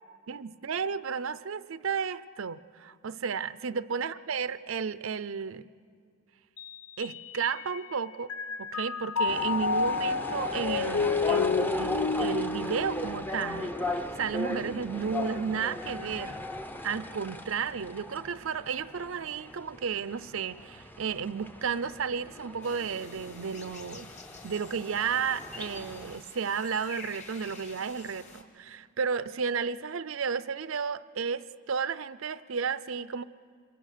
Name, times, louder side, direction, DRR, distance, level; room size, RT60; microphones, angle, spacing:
voice 1, 0.3-5.7 7.0-8.3 8.6-16.4 16.8-24.1 24.4-33.2, right 6 dB, 70° right, 14 dB, 0.6 m, -33 dB
Mallet percussion, 6.6-7.9 8.3-13.7, left 5 dB, 80° left, 0.5 m, -31 dB
sound 1, 9.3-26.2, left 1 dB, 10° left, 0.7 m, -37 dB
sound 2, 22.6-28.4, left 3 dB, 35° left, 2.2 m, -48 dB
26.5 x 22.5 x 6.8 m, 2.1 s
head